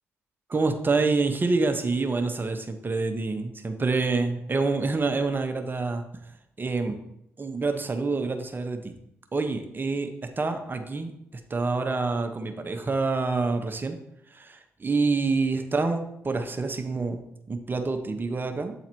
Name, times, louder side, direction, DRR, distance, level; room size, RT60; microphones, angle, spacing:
voice 1, 0.5-6.0 6.6-7.0 7.4-8.9 9.3-10.1 10.4-11.1 11.5-14.0 14.3-17.2 17.5-18.7, right 3 dB, 35° right, 6 dB, 1.0 m, -27 dB
8.6 x 3.9 x 4.6 m, 0.79 s
hypercardioid pair, 45°, 6 cm